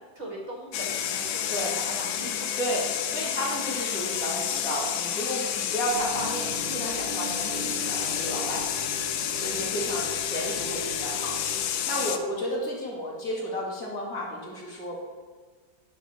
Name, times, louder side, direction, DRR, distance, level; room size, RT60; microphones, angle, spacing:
voice 1, 0.0-2.5 9.5-9.9, right 1 dB, 40° right, -2 dB, 1.8 m, -40 dB
sound 1, 0.7-12.2, left 9 dB, 90° left, 1.4 m, -30 dB
voice 2, 3.1-8.6 9.4-11.3 11.6-15.0, equal, 50° left, -4 dB, 2.4 m, -32 dB
sound 2, 5.9-11.6, right 3 dB, 25° left, 1.8 m, -40 dB
10.0 x 4.2 x 6.7 m, 1.5 s
omnidirectional pair, 2.0 m